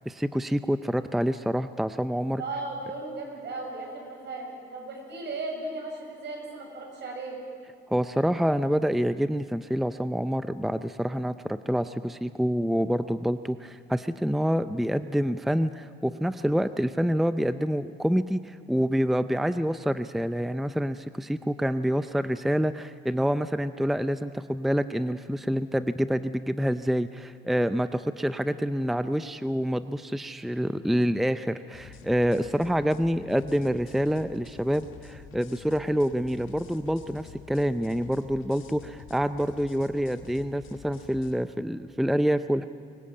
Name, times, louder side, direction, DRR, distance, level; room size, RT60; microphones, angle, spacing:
voice 1, 0.1-2.4 7.9-42.6, equal, ahead, 12 dB, 0.5 m, -27 dB
voice 2, 2.4-7.4, right 2 dB, 65° right, 1 dB, 6.8 m, -36 dB
sound 1, 31.7-41.3, left 8 dB, 85° left, 1.9 m, -49 dB
24.0 x 17.0 x 8.7 m, 2.1 s
cardioid pair, 90°, 20 cm